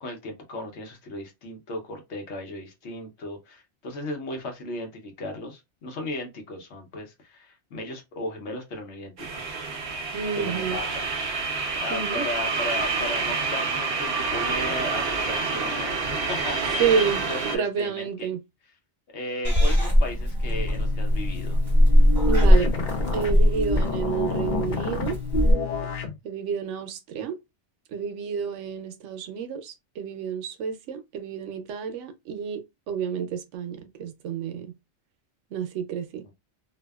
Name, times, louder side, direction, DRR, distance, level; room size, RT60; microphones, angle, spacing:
voice 1, 0.0-9.6 10.4-11.1 11.7-16.9 17.3-18.3 19.1-21.6 36.2-36.3, left 2 dB, 70° left, 1.0 m, -36 dB
sound 1, 9.2-17.6, right 4 dB, 65° right, 0.8 m, -28 dB
voice 2, 10.1-10.8 11.9-12.2 16.8-18.4 22.3-22.7 23.1-25.2 26.2-27.4 27.9-34.7 35.5-36.2, right 6 dB, 90° right, 0.9 m, -29 dB
Purr / Meow, 19.4-25.5, equal, 20° right, 1.4 m, -21 dB
sound 2, 20.4-26.2, left 3 dB, 50° left, 0.6 m, -29 dB
2.7 x 2.2 x 2.2 m
omnidirectional pair, 1.2 m